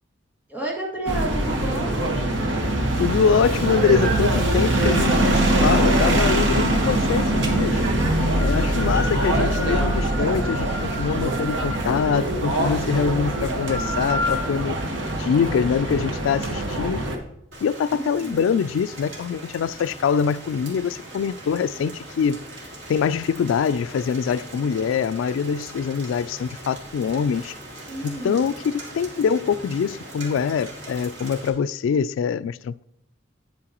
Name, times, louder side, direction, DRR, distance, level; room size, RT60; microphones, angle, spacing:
voice 1, 0.5-2.0 8.3-8.9 17.9-18.4 27.9-28.5, right 2 dB, 10° right, 2.1 m, -31 dB
sound 1, 1.1-17.2, right 1 dB, 70° right, 1.3 m, -22 dB
voice 2, 3.0-7.8 8.4-14.8 15.2-17.1 17.6-22.4 22.9-27.5 28.0-32.8, left 6 dB, 90° left, 0.3 m, -24 dB
Rain, 17.5-31.5, right 1 dB, 85° right, 2.4 m, -40 dB
9.5 x 8.6 x 3.0 m
head